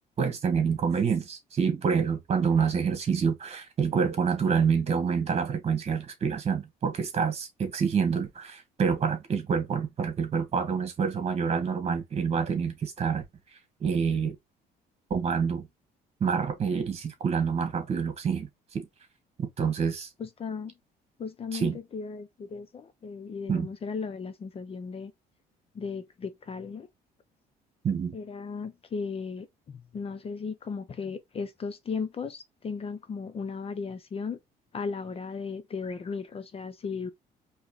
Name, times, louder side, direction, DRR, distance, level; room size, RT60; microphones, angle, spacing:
voice 1, 0.2-13.2 13.8-14.4 15.1-15.7 16.2-18.9 19.4-20.1 21.5-21.8 23.5-23.7 27.8-28.2, right 6 dB, 40° right, 1.8 m, -27 dB
voice 2, 20.2-20.7 21.2-25.1 25.7-26.9 28.1-34.4 34.7-37.1, left 5 dB, 35° left, 0.7 m, -36 dB
4.6 x 3.1 x 3.0 m
cardioid pair, 110°, 17 cm